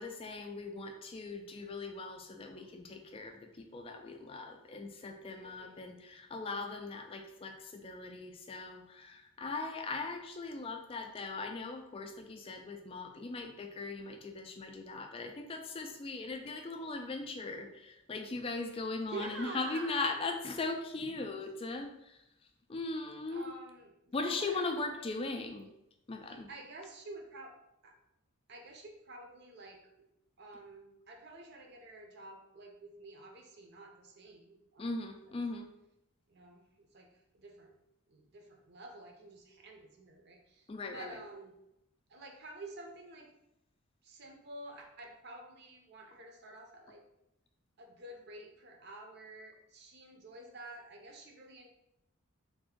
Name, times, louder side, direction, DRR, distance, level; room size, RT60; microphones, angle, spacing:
voice 1, 0.0-22.2 22.7-23.5 24.1-25.7 26.1-26.5 34.8-35.7 40.7-41.2, left 3 dB, 25° left, 5 dB, 0.3 m, -39 dB
voice 2, 5.3-6.0 19.0-20.3 23.3-25.0 26.3-27.6 27.8-28.0 28.5-29.8 30.4-34.9 35.3-35.4 36.3-37.1 37.3-37.7 38.1-41.6 42.1-43.3 44.0-47.0 47.8-51.7, right 2 dB, 50° right, 2 dB, 0.6 m, -49 dB
3.4 x 2.5 x 3.6 m, 0.85 s
head